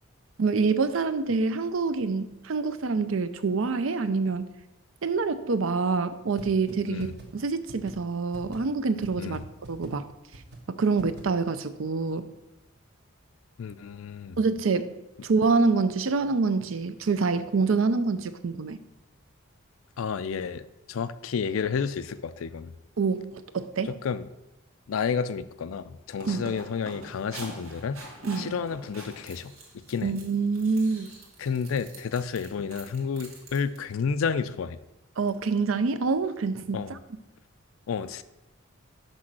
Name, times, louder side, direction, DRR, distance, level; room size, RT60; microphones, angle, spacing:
voice 1, 0.4-4.5 5.0-9.4 9.7-10.1 10.7-12.2 14.4-14.9 15.2-18.8 23.0-23.9 26.3-26.5 28.3-28.5 30.0-31.1 35.2-37.0, right 4 dB, 75° right, 12 dB, 0.5 m, -26 dB
sound 1, 6.4-6.5 6.7-6.8 7.0-7.2 7.7-7.9 8.3-8.6 9.0-9.1 9.3-9.4 9.6-9.9 10.3-10.6 11.0-11.2, right 2 dB, 55° right, 1.3 m, -43 dB
voice 2, 13.6-14.4 20.0-22.7 23.8-24.3 24.9-28.0 28.4-30.2 31.4-34.8 36.7-36.9 37.9-38.2, left 6 dB, 80° left, 14 dB, 0.4 m, -31 dB
sound 2, 25.9-33.8, right 1 dB, 90° right, 1.8 m, -45 dB
6.2 x 5.2 x 6.1 m, 0.94 s
head